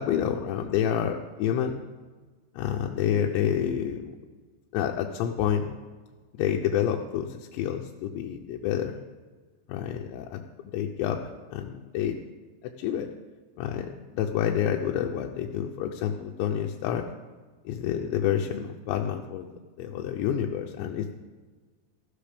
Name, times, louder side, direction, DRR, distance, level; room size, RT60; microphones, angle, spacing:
voice 1, 0.0-1.8 2.6-4.1 4.7-5.8 6.4-9.0 9.7-10.4 10.7-12.2 12.6-13.1 13.6-17.1 17.7-19.5 19.8-21.1, left 9 dB, 90° left, 1 dB, 2.9 m, -28 dB
15.5 x 11.5 x 3.4 m, 1.4 s
omnidirectional pair, 5.1 m